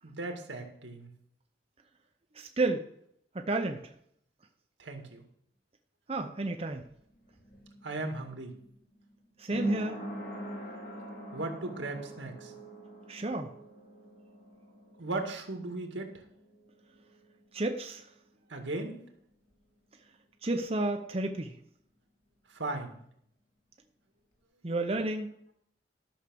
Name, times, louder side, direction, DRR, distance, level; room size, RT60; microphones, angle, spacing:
voice 1, 0.0-1.1 4.8-5.2 7.8-8.5 11.3-12.5 15.0-16.2 18.5-19.0 22.5-23.0, right 2 dB, 85° right, 4 dB, 1.9 m, -37 dB
voice 2, 2.3-2.9 3.3-3.9 6.1-6.9 9.4-10.0 13.1-13.5 17.5-18.1 20.4-21.6 24.6-25.3, right 2 dB, 30° right, 5 dB, 0.7 m, -31 dB
sound 1, 6.8-17.9 18.2-18.3, equal, 50° left, 2.6 m, -44 dB
13.0 x 6.5 x 6.3 m, 0.71 s
head